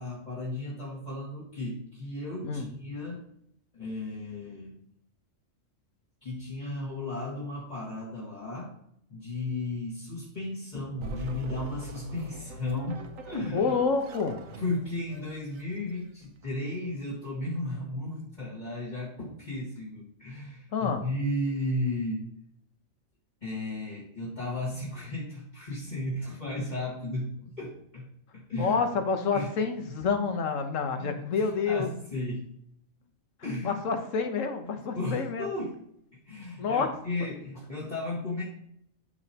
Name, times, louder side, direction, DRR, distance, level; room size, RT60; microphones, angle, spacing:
voice 1, 0.0-3.2 3.7-4.8 6.2-8.7 9.1-13.7 14.6-22.3 23.4-28.1 28.3-28.8 29.3-29.5 30.9-32.5 33.4-33.8 34.6-35.8 36.3-38.4, left 2 dB, 35° left, -6 dB, 1.9 m, -34 dB
sound 1, 11.0-16.5, right 1 dB, 85° right, 1.2 m, -42 dB
voice 2, 13.5-14.4 20.7-21.0 28.6-31.9 33.4-35.5 36.6-36.9, left 5 dB, 75° left, 6 dB, 1.3 m, -28 dB
12.0 x 5.1 x 2.9 m, 0.73 s
omnidirectional pair, 1.4 m